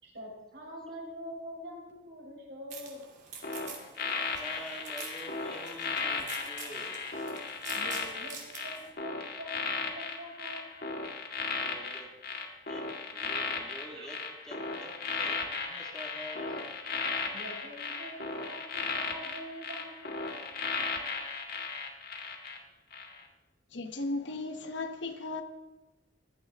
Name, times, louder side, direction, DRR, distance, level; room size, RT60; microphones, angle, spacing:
voice 1, 0.0-3.0 7.7-10.6 14.0-14.1 17.3-20.3, equal, 65° right, 5.0 m, -45 dB
sound 1, 2.7-8.9, right 6 dB, 40° right, 2.7 m, -47 dB
sound 2, 3.4-22.6 22.9-23.2, left 4 dB, 55° left, 1.8 m, -35 dB
voice 2, 4.0-7.0 11.6-12.1 12.7-12.9 13.1-14.2 14.4-16.6, equal, 5° left, 1.8 m, -47 dB
voice 3, 23.7-25.4, left 2 dB, 70° left, 1.2 m, -35 dB
16.5 x 12.5 x 3.6 m
head